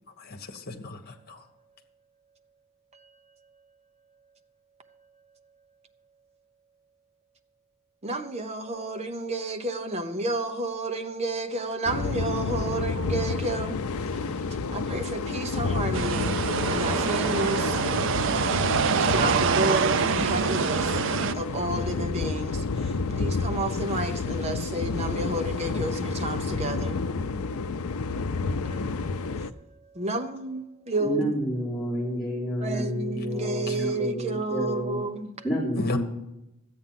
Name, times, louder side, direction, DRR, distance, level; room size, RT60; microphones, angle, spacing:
voice 1, 0.2-1.4 33.7-33.8 35.8-36.0, left 2 dB, 45° left, 1.3 m, -32 dB
voice 2, 8.0-13.8 14.1-16.4 16.7-17.8 18.8-21.0 21.3-27.0 28.6-31.3 32.6-35.3, right 2 dB, 30° right, 0.9 m, -31 dB
sound 1, 11.9-29.5, left 4 dB, 85° left, 0.6 m, -30 dB
sound 2, 15.9-21.3, right 6 dB, 60° right, 0.4 m, -25 dB
voice 3, 31.0-35.0 35.4-36.0, equal, ahead, 3.5 m, -29 dB
13.0 x 8.6 x 5.8 m
head